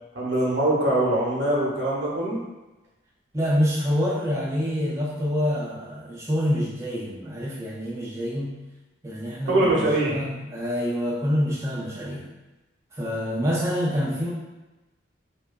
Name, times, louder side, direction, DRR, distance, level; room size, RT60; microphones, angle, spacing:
voice 1, 0.1-2.4 9.5-10.2, right 1 dB, 75° right, -6 dB, 0.7 m, -23 dB
voice 2, 3.3-8.5 9.0-12.3 13.0-14.3, equal, 15° right, -6 dB, 0.3 m, -26 dB
2.6 x 2.2 x 2.2 m, 1.1 s
head